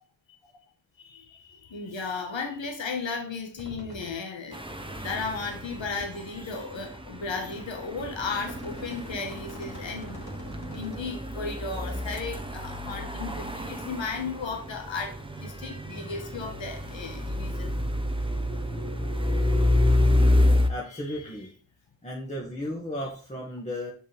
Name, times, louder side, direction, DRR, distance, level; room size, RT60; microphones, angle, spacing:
voice 1, 1.0-4.6 5.0-10.2 10.7-17.8 20.9-21.2, left 4 dB, 80° left, 3 dB, 1.5 m, -35 dB
sound 1, 3.6-4.1 4.6-4.7 5.5-6.2 6.9-7.0 7.6-11.1, equal, 55° left, 3.1 m, -44 dB
sound 2, 4.5-20.7, left 1 dB, 10° right, 0.9 m, -28 dB
voice 2, 20.7-21.5 22.0-23.9, left 1 dB, 15° left, -3 dB, 1.7 m, -34 dB
7.5 x 5.3 x 3.4 m, 0.41 s
cardioid pair, 55°, 45 cm